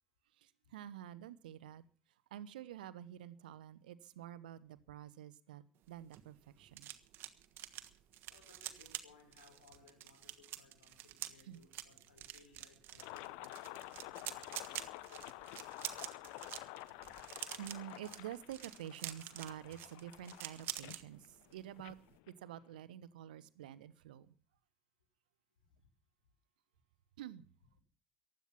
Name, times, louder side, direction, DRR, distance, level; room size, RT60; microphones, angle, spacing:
voice 1, 0.4-1.8 2.3-6.9 11.4-11.6 17.6-22.0 22.3-24.3 27.2-27.4, right 11 dB, 75° right, 1.0 m, -49 dB
sound 1, 5.8-21.0 21.4-21.6 21.9-22.2, right 13 dB, 55° right, 1.4 m, -48 dB
voice 2, 8.3-14.5 14.8-15.7 25.6-25.9, left 5 dB, 80° left, 4.6 m, -65 dB
sound 2, 13.0-22.8, left 19 dB, 65° left, 0.8 m, -50 dB
15.5 x 11.5 x 5.8 m
figure-of-eight pair, 65°, 5 cm